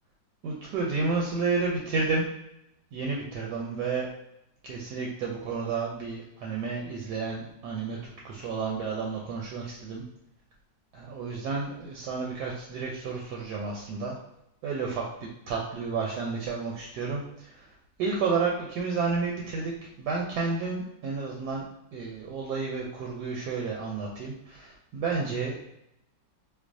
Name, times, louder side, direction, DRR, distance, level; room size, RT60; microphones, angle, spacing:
voice 1, 0.4-2.2 2.9-4.1 4.6-10.0 10.9-14.2 14.6-17.7 18.0-19.7 20.0-21.6 21.9-25.6, right 4 dB, 70° right, -2 dB, 1.1 m, -31 dB
4.6 x 2.1 x 2.6 m, 0.81 s
omnidirectional pair, 2.0 m